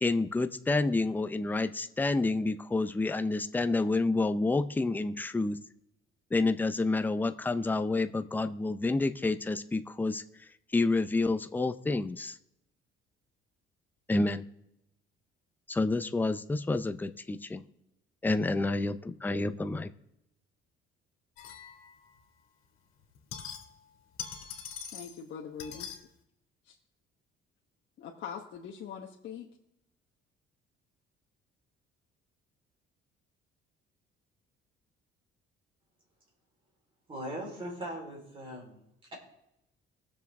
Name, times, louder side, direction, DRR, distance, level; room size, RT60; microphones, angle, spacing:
voice 1, 0.0-5.6 6.3-10.2 10.7-12.4 14.1-14.4 15.7-17.6 18.2-19.9, left 3 dB, 10° left, 8 dB, 0.5 m, -29 dB
sound 1, 21.4-22.2 23.0-23.9 24.1-25.2 25.6-26.0, left 7 dB, 80° left, 2.0 m, -43 dB
voice 2, 24.9-25.9 26.7-26.8 28.0-29.5, left 7 dB, 60° left, -1 dB, 1.1 m, -42 dB
voice 3, 37.1-38.8, right 1 dB, 25° right, -1 dB, 3.8 m, -39 dB
20.0 x 7.0 x 3.5 m, 0.82 s
cardioid pair, 150°, 21 cm